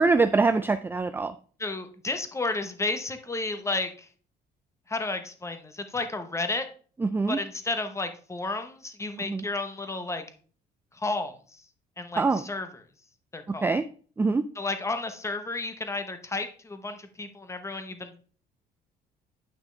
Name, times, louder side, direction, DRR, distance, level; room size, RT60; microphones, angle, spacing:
voice 1, 0.0-1.3 7.0-7.4 9.2-9.5 12.2-12.4 13.5-13.8 14.2-14.4, right 4 dB, 10° right, 12 dB, 0.3 m, -24 dB
voice 2, 1.6-3.9 4.9-6.7 7.3-10.2 11.0-11.3 12.0-12.7 13.3-13.8 14.6-18.2, left 3 dB, 15° left, 8 dB, 1.0 m, -32 dB
9.0 x 5.8 x 3.3 m, 0.42 s
cardioid pair, 110°, 17 cm